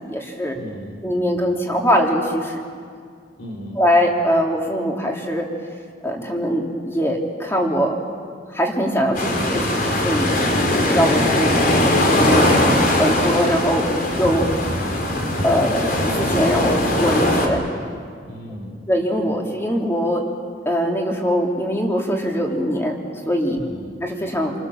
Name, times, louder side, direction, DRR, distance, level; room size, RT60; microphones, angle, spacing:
voice 1, 0.0-0.6 1.0-2.6 3.8-5.5 6.0-8.0 8.5-10.3 10.7-12.5 13.0-13.9 14.2-14.5 15.4-17.6 18.9-20.2 20.6-23.0 23.3-23.6 24.0-24.5, equal, 15° left, 0 dB, 3.1 m, -22 dB
voice 2, 0.6-1.0 3.4-3.8 18.2-18.8 23.6-24.0, equal, 85° left, 0 dB, 4.3 m, -36 dB
sound 1, 9.1-17.5, left 1 dB, 50° left, 3.8 m, -20 dB
29.0 x 24.5 x 7.2 m, 2.1 s
head